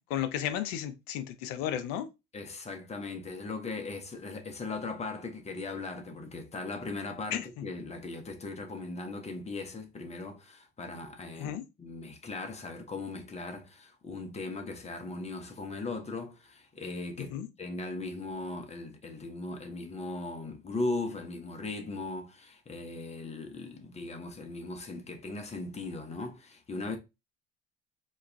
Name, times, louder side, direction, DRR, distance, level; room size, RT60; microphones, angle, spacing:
voice 1, 0.1-2.1 7.3-7.7 11.4-11.6 17.2-17.5, left 10 dB, 60° left, 0.5 m, -34 dB
voice 2, 2.3-17.3 17.6-27.0, left 3 dB, 20° left, 0.7 m, -38 dB
2.3 x 2.2 x 3.2 m
figure-of-eight pair, 55°, 32 cm